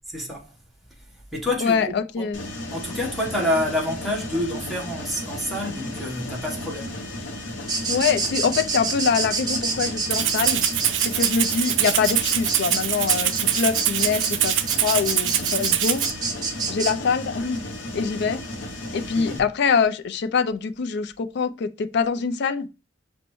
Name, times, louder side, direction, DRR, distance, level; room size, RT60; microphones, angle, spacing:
voice 1, 0.1-0.5 1.3-2.3 2.7-7.0 19.1-19.4, left 1 dB, ahead, 1.1 m, -28 dB
voice 2, 1.6-2.4 7.9-10.6 11.0-16.0 16.7-17.6 17.9-18.4 18.9-22.7, left 5 dB, 60° left, 0.4 m, -24 dB
Mechanisms, 2.3-19.4, left 1 dB, 90° left, 0.7 m, -35 dB
sound 1, 7.7-16.9, right 4 dB, 20° right, 0.8 m, -28 dB
Rattle (instrument), 10.1-16.1, right 12 dB, 70° right, 0.4 m, -24 dB
6.1 x 2.1 x 3.0 m
head